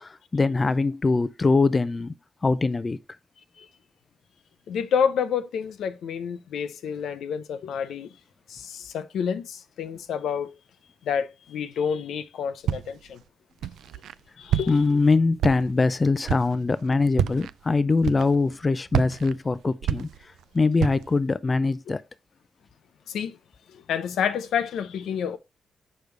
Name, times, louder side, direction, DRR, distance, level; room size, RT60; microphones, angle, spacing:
voice 1, 0.0-2.1 2.4-3.0 14.7-20.1 20.5-22.0, left 3 dB, 35° left, 0.4 m, -22 dB
voice 2, 4.7-8.1 8.5-10.5 11.0-13.2 14.4-14.8 21.9-22.0 23.1-23.4 23.9-25.4, left 7 dB, 85° left, 0.6 m, -29 dB
Walk footsteps, 12.7-13.1 13.6-14.1 14.5-15.0 15.4-15.9 16.2-16.6 17.1-17.5 18.0-18.5 18.9-20.4 20.8-21.2, right 10 dB, 85° right, 0.3 m, -28 dB
6.5 x 5.1 x 3.2 m
cardioid pair, 70°, 0 cm